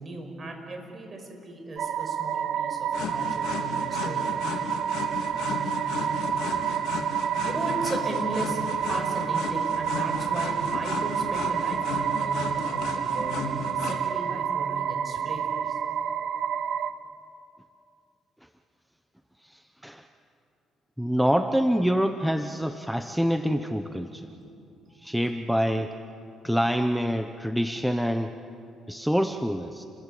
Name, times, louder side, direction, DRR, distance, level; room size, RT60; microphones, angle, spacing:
voice 1, 0.0-4.2 7.4-8.6 8.9-15.8 24.4-25.0, right 2 dB, 30° right, 4 dB, 5.6 m, -37 dB
sound 1, 1.8-16.9, right 8 dB, 60° right, 1.1 m, -29 dB
sound 2, 2.9-14.0, left 4 dB, 80° left, 3.8 m, -35 dB
voice 2, 19.4-20.0 21.0-24.3 25.0-25.9 26.4-28.3 28.9-29.8, equal, ahead, 8 dB, 0.9 m, -26 dB
29.5 x 21.5 x 8.4 m, 2.7 s
cardioid pair, 105°, 0 cm